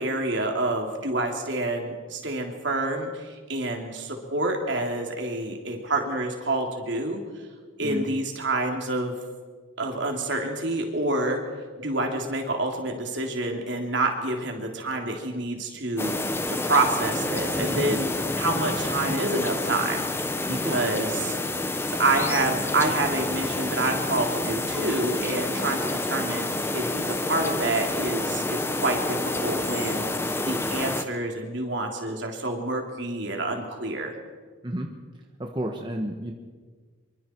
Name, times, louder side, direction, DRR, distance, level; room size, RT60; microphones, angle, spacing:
voice 1, 0.0-7.2 7.8-9.2 9.8-11.4 11.8-16.1 16.5-18.1 18.4-20.0 20.4-21.4 22.0-34.1, right 2 dB, 60° right, 2 dB, 3.3 m, -28 dB
sound 1, 16.0-31.0, left 2 dB, 10° left, 0.9 m, -28 dB
voice 2, 20.5-20.9 30.2-30.8 34.6-34.9 35.4-36.3, right 1 dB, 20° right, 2 dB, 1.3 m, -32 dB
26.0 x 24.0 x 4.6 m, 1.5 s
head